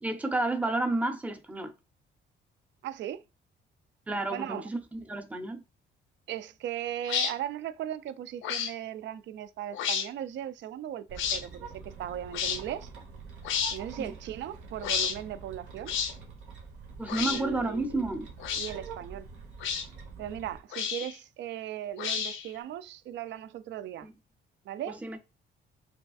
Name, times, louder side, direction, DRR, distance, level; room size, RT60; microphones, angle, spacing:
voice 1, 0.0-1.7 4.1-5.6 14.0-14.1 17.0-18.3 24.0-24.1 24.9-25.3, right 2 dB, 5° right, 0.6 m, -31 dB
voice 2, 2.8-3.2 4.3-4.7 6.3-11.7 12.0-12.9 13.7-15.9 17.3-18.0 18.6-19.3 20.2-24.1 24.7-25.0, right 11 dB, 65° right, 0.4 m, -37 dB
sound 1, 7.0-7.3 8.4-8.7 9.7-10.1 11.2-11.4 12.3-12.6 13.4-13.8 14.8-15.2 15.9-16.1 17.1-17.4 18.4-18.7 19.6-19.9 20.7-21.2 22.0-22.5, left 7 dB, 80° left, 0.6 m, -30 dB
sound 2, 11.1-20.6, right 5 dB, 85° right, 1.2 m, -46 dB
5.0 x 2.3 x 2.4 m
cardioid pair, 90°, 20 cm